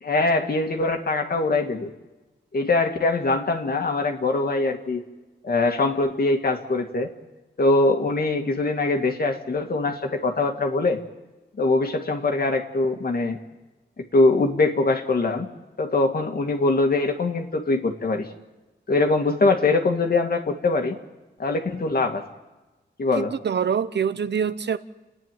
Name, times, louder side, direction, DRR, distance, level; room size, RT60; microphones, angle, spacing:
voice 1, 0.0-1.9 2.5-5.0 5.4-7.1 7.6-11.0 11.6-13.4 14.1-15.5 15.8-18.3 18.9-21.0 21.4-22.2 23.0-23.3, left 3 dB, 50° left, 2.1 m, -22 dB
voice 2, 23.2-24.8, right 7 dB, 65° right, 1.0 m, -25 dB
30.0 x 10.0 x 9.3 m
wide cardioid pair, 100°, 19 cm